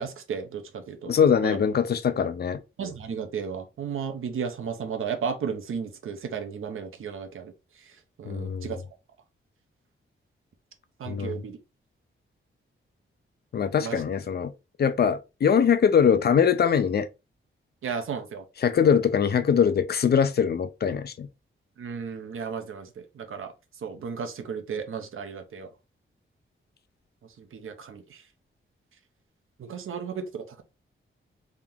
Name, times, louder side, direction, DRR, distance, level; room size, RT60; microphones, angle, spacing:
voice 1, 0.0-1.1 1.4-1.6 2.8-7.5 8.2-8.8 11.0-11.6 13.8-14.0 17.8-18.4 21.8-23.5 23.8-25.7 27.4-28.2 29.6-30.6, right 6 dB, 75° right, 0.8 m, -34 dB
voice 2, 1.1-2.6 8.3-8.7 11.1-11.4 13.5-14.5 14.8-17.1 18.6-21.3, left 7 dB, 50° left, 0.5 m, -22 dB
3.7 x 2.9 x 3.6 m
wide cardioid pair, 175°, 21 cm